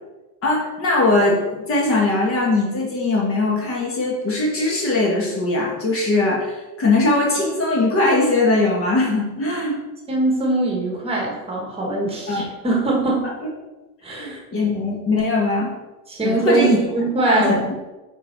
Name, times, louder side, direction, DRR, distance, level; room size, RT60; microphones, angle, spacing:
voice 1, 0.4-9.8 12.3-12.4 14.2-15.7 16.2-16.8 17.2-17.6, left 2 dB, 30° left, -2 dB, 1.6 m, -20 dB
voice 2, 10.1-13.3 14.0-14.4 16.1-17.6, right 2 dB, 15° right, -1 dB, 1.5 m, -22 dB
7.1 x 5.3 x 4.6 m, 1.1 s
cardioid pair, 175°, 44 cm